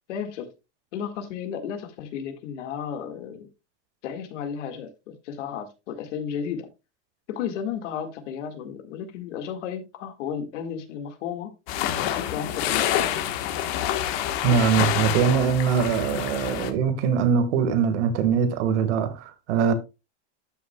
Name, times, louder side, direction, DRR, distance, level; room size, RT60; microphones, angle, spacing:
voice 1, 0.1-0.5 0.9-3.5 4.0-6.7 7.3-11.5 12.0-12.9, left 8 dB, 90° left, 1.9 m, -33 dB
sound 1, 11.7-16.7, left 11 dB, 60° left, 1.4 m, -27 dB
voice 2, 14.4-19.7, right 7 dB, 75° right, 1.7 m, -22 dB
12.5 x 6.1 x 2.3 m
supercardioid pair, 160°, 35 cm